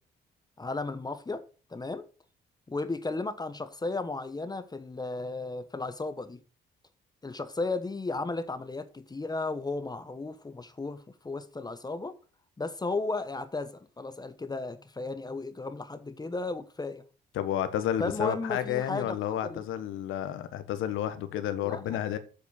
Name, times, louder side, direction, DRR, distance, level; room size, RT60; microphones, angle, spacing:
voice 1, 0.6-1.4 1.7-2.1 2.7-6.4 7.2-12.2 12.6-17.0 18.0-19.2 19.4-19.6 21.6-22.0, left 3 dB, 20° left, 1.0 m, -34 dB
voice 2, 17.3-22.2, left 10 dB, 90° left, 1.3 m, -31 dB
7.8 x 6.9 x 6.9 m
cardioid pair, 90°, 20 cm